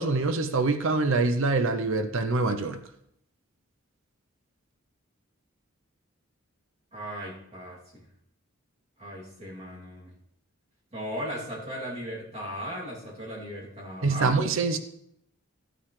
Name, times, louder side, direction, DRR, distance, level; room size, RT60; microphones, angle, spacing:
voice 1, 0.0-2.8 14.0-14.8, right 3 dB, 65° right, 0.7 m, -25 dB
voice 2, 6.9-8.1 9.0-10.1 10.9-14.3, equal, 30° right, 2.9 m, -37 dB
13.5 x 8.8 x 3.3 m
head